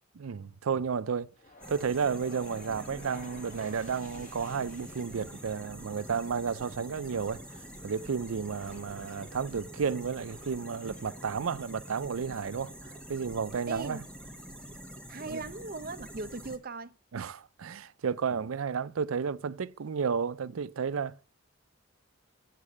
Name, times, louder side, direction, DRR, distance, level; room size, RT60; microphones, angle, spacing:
voice 1, 0.2-1.3 1.7-7.4 7.8-14.0 15.3-15.4 17.1-21.2, right 6 dB, 90° right, 0.5 m, -32 dB
sound 1, 1.4-15.5, left 1 dB, 35° left, 1.9 m, -54 dB
sound 2, 1.6-16.6, right 1 dB, 5° left, 1.2 m, -46 dB
voice 2, 13.7-14.0 15.1-16.9, right 3 dB, 45° right, 0.6 m, -39 dB
8.3 x 7.5 x 8.5 m
head